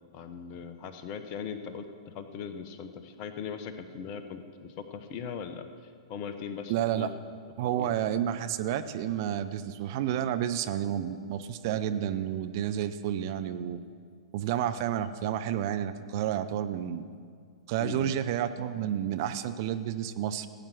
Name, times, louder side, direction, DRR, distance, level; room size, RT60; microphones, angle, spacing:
voice 1, 0.1-5.7 6.1-7.1 7.8-7.9 10.8-11.1 17.8-18.1, left 6 dB, 35° left, 9 dB, 0.9 m, -39 dB
voice 2, 6.7-7.1 7.6-13.8 14.3-17.0 17.7-20.5, right 10 dB, 45° right, 10 dB, 0.6 m, -30 dB
16.5 x 9.0 x 6.0 m, 2.2 s
figure-of-eight pair, 105°, 3 cm